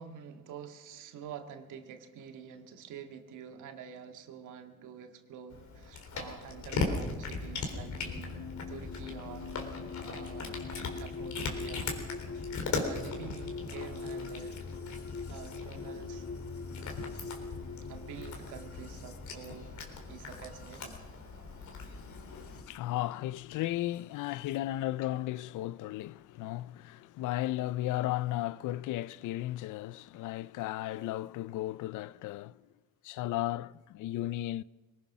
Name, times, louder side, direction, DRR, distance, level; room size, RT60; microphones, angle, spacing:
voice 1, 0.0-8.4 8.7-9.6 10.0-10.6 11.0-12.0 12.3-12.4 12.8-14.6 15.3-16.3 17.9-19.7 20.1-21.0, right 8 dB, 85° right, 2.0 m, -47 dB
Cat, 5.5-22.6, left 3 dB, 70° left, 4.0 m, -39 dB
sound 1, 7.7-22.8 23.9-24.6, left 4 dB, 50° left, 1.9 m, -43 dB
voice 2, 21.9-32.6 33.0-34.6, left 15 dB, 85° left, 0.6 m, -35 dB
21.5 x 19.5 x 6.2 m
cardioid pair, 90°, 30 cm